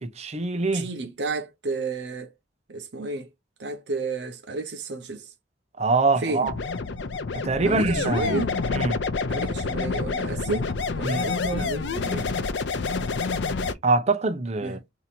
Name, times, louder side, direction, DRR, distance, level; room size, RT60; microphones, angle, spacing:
voice 1, 0.0-0.9 5.8-6.5 7.3-8.4 8.7-9.0 11.0-11.3 13.8-14.8, right 3 dB, 40° right, 0.6 m, -24 dB
voice 2, 0.7-2.3 2.7-3.3 3.6-5.3 6.2-6.5 7.6-8.6 9.3-12.3 14.6-14.8, right 3 dB, 80° right, 0.7 m, -32 dB
sound 1, 6.5-13.7, left 4 dB, 90° left, 0.5 m, -28 dB
2.8 x 2.7 x 4.2 m
head